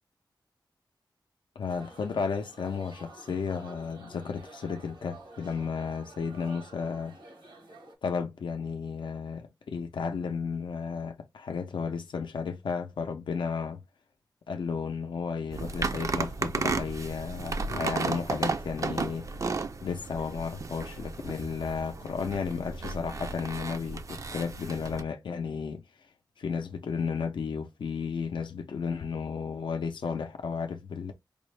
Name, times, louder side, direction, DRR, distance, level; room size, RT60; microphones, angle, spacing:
voice 1, 1.6-7.2 8.0-13.8 14.5-19.3 19.8-25.8 26.4-31.1, left 5 dB, 85° left, 0.5 m, -33 dB
sound 1, 1.7-7.9, right 2 dB, 80° right, 1.1 m, -50 dB
sound 2, 15.5-25.0, right 4 dB, 40° right, 0.3 m, -34 dB
5.0 x 2.1 x 3.1 m
wide cardioid pair, 120°, 8 cm